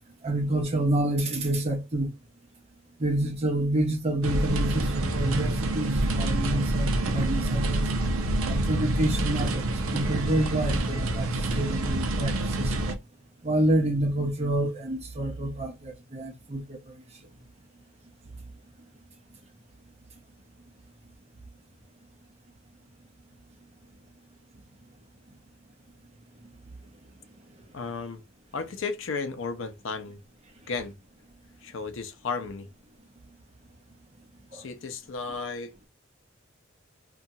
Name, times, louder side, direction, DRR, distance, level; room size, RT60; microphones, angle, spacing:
voice 1, 0.2-2.1 3.0-7.9 8.5-9.6 9.9-12.8 13.4-17.0, right 1 dB, 30° right, 0.7 m, -28 dB
sound 1, 4.2-13.0, right 1 dB, 90° right, 0.5 m, -27 dB
voice 2, 27.7-28.2 28.5-30.2 30.7-30.9 31.6-32.7 34.5-35.7, left 4 dB, 70° left, 0.5 m, -34 dB
2.8 x 2.2 x 2.7 m
head